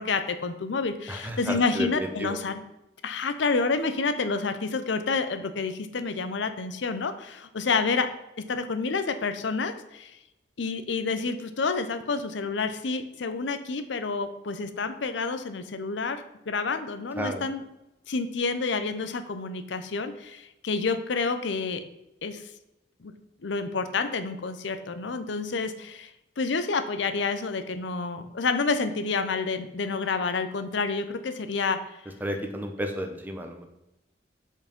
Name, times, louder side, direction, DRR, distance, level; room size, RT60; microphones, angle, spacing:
voice 1, 0.0-2.6 3.0-8.1 8.5-10.2 10.6-17.6 18.1-21.8 22.2-22.4 23.0-23.1 23.4-26.1 26.4-31.8, left 4 dB, 70° left, 9 dB, 0.6 m, -29 dB
voice 2, 1.1-2.4 17.1-17.4 32.2-33.7, equal, 10° right, 4 dB, 0.8 m, -32 dB
5.7 x 4.7 x 5.2 m, 0.91 s
head